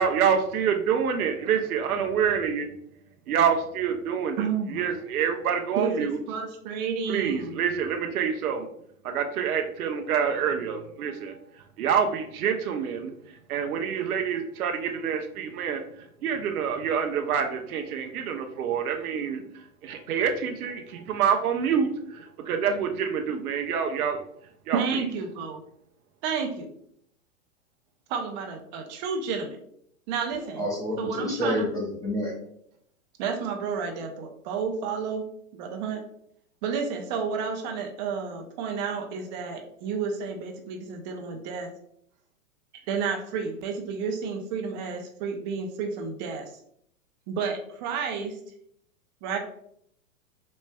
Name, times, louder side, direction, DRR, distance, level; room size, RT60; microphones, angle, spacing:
voice 1, 0.0-2.7 3.3-6.2 7.1-8.7 9.0-11.4 11.8-24.2 24.7-25.0, right 7 dB, 80° right, 5 dB, 0.7 m, -27 dB
voice 2, 4.4-4.8 5.8-7.5 24.7-25.6 26.2-26.7 28.1-29.6 30.1-30.6 31.0-31.6 33.2-35.3 35.5-36.0 36.6-41.7 42.9-46.5 47.3-48.4 49.2-49.4, right 5 dB, 35° right, 4 dB, 0.5 m, -31 dB
voice 3, 30.3-32.3, equal, 10° left, -5 dB, 0.7 m, -29 dB
4.3 x 3.1 x 2.2 m, 0.69 s
hypercardioid pair, 130°, 43 cm